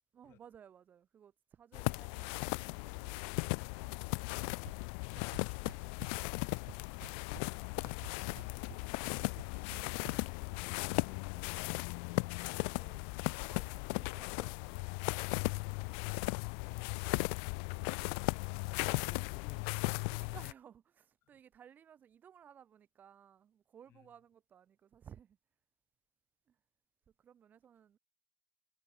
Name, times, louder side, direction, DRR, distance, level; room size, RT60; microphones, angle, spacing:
voice 1, 0.1-3.4 3.7-4.6 5.8-7.0 8.2-8.4 9.3-11.9 12.6-16.1 17.7-18.0 20.1-25.4 26.5-26.6 27.2-28.0, right 8 dB, 35° right, 3.8 m, -60 dB
sound 1, 1.7-20.5, left 40 dB or more, 85° left, 1.0 m, -37 dB
sound 2, 4.7-4.8 5.2-6.1 6.5-7.6 7.9-10.1, right 21 dB, 65° right, 1.0 m, -53 dB
voice 2, 16.6-17.4 18.6-20.0, left 15 dB, 55° left, 4.6 m, -57 dB
cardioid pair, 135°, 5 cm